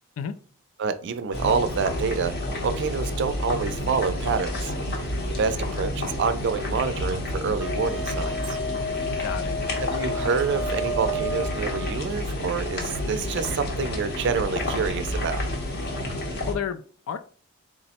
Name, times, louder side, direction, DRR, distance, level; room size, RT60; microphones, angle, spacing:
voice 1, 0.8-2.4 2.6-4.7 5.4-8.6 9.8-15.4, right 5 dB, 55° right, 0.4 m, -27 dB
sound 1, 1.3-16.5, left 1 dB, 55° left, 0.8 m, -30 dB
Wind instrument woodwind instrument, 7.6-12.0, left 1 dB, 5° right, 0.5 m, -32 dB
voice 2, 9.2-9.6 16.5-17.2, left 7 dB, 70° left, 0.4 m, -31 dB
3.5 x 2.0 x 4.1 m
head